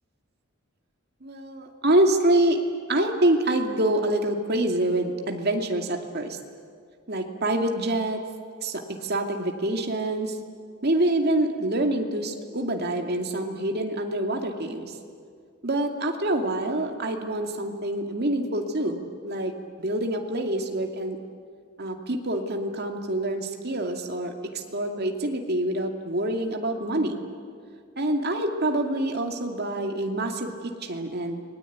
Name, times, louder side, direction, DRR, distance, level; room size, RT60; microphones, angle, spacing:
voice 1, 1.2-2.6 2.9-6.4 7.1-8.2 8.6-10.3 10.8-14.9 15.6-19.5 19.8-21.2 21.8-27.2 28.0-30.5 30.9-31.4, right 1 dB, 50° right, 3 dB, 2.5 m, -26 dB
29.5 x 21.0 x 9.4 m, 2.1 s
head